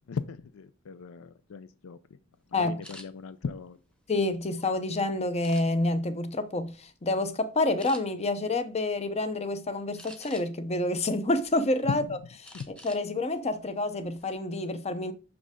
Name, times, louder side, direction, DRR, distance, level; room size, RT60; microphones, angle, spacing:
voice 1, 0.1-2.2 2.6-3.8 11.8-12.2 12.5-12.7, left 5 dB, 65° left, 0.4 m, -37 dB
sound 1, 2.8-3.1 3.7-4.7 5.4-6.0 6.5-6.8 7.1-7.3 7.8-8.0 10.0-10.7 11.2-11.9 12.4-13.0 13.4-13.6 14.0-14.3, equal, 5° left, 1.0 m, -48 dB
voice 2, 4.1-15.1, left 2 dB, 30° left, 0.7 m, -28 dB
6.3 x 6.0 x 3.6 m
head